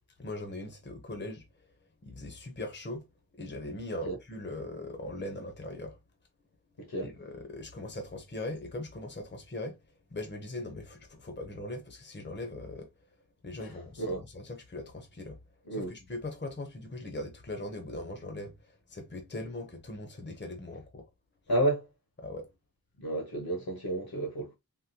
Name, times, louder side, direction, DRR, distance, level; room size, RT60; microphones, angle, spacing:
voice 1, 0.2-1.4 2.0-3.0 3.4-6.0 7.0-9.8 10.1-12.9 13.4-15.4 15.7-18.5 18.9-21.1 22.2-22.5, left 2 dB, 30° left, 0.7 m, -40 dB
voice 2, 6.8-7.1 13.6-14.2 15.7-15.9 21.5-21.9 23.0-24.5, right 1 dB, 75° left, 1.3 m, -31 dB
3.6 x 2.1 x 2.8 m
wide cardioid pair, 50°, 37 cm